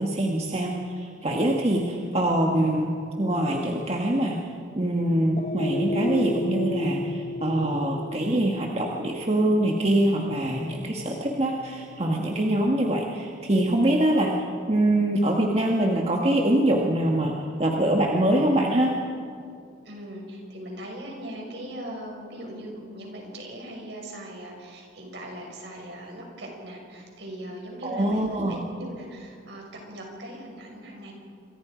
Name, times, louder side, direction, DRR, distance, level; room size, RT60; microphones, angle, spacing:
voice 1, 0.0-2.9 3.2-4.4 4.7-18.9 27.8-28.6, right 1 dB, 30° right, -1 dB, 1.7 m, -24 dB
sound 1, 5.3-13.8, left 2 dB, 35° left, 0.9 m, -35 dB
voice 2, 19.8-31.1, right 1 dB, 65° right, 0 dB, 6.4 m, -40 dB
28.0 x 25.0 x 5.2 m, 2.4 s
head